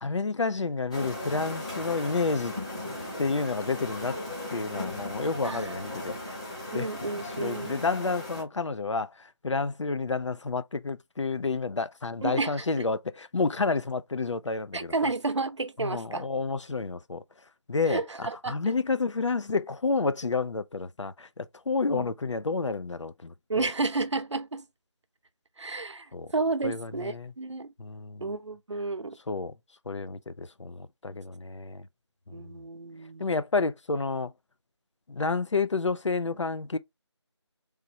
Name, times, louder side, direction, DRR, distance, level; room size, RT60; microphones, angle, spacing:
voice 1, 0.0-2.5 3.2-4.2 4.5-6.4 6.7-6.9 7.2-15.1 15.8-17.2 17.7-23.7 26.1-26.3 26.6-27.3 27.8-28.3 29.3-29.5 29.9-31.9 32.3-32.6 33.2-34.3 35.1-36.8, left 4 dB, 80° left, 0.6 m, -30 dB
sound 1, 0.9-8.4, left 1 dB, 15° left, 0.9 m, -37 dB
voice 2, 6.7-7.8 12.2-12.8 14.7-16.3 17.9-18.6 21.9-22.1 23.5-24.7 25.6-26.1 26.3-27.7 28.2-29.2 32.3-33.3, right 3 dB, 75° right, 0.7 m, -31 dB
3.5 x 3.1 x 2.8 m
figure-of-eight pair, 170°, 15 cm